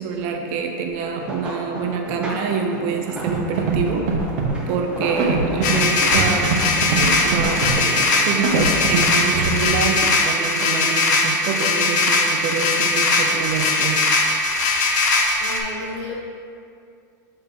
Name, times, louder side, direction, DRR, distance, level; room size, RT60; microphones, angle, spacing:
voice 1, 0.0-4.1 4.7-14.0, right 5 dB, 40° right, 3 dB, 0.5 m, -26 dB
sound 1, 1.0-10.5 10.9-11.8 12.2-13.6 14.3-14.6 15.0-15.1, right 1 dB, 10° right, 0.7 m, -33 dB
Scratching (performance technique), 3.3-3.4 3.6-3.8 4.1-4.5 5.2-5.7 6.1-6.6 6.8-7.0 7.3-7.7 8.4-9.0 9.3-9.7, right 6 dB, 60° right, 1.1 m, -21 dB
sound 2, 5.6-15.6, left 3 dB, 65° left, 0.8 m, -20 dB
voice 2, 14.8-15.1 15.4-16.1, left 2 dB, 40° left, -2 dB, 1.1 m, -33 dB
7.0 x 3.9 x 3.7 m, 2.3 s
supercardioid pair, 165°, 10 cm